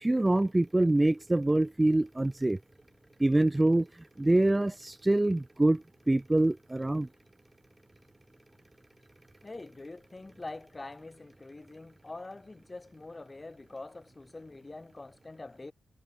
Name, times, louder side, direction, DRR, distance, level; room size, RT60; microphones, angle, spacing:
voice 1, 0.0-2.6 3.2-3.9 4.2-5.8 6.1-7.1, right 2 dB, 15° right, 0.7 m, -25 dB
voice 2, 9.4-15.7, left 2 dB, 25° left, 3.0 m, -45 dB
cardioid pair, 60°, 0 cm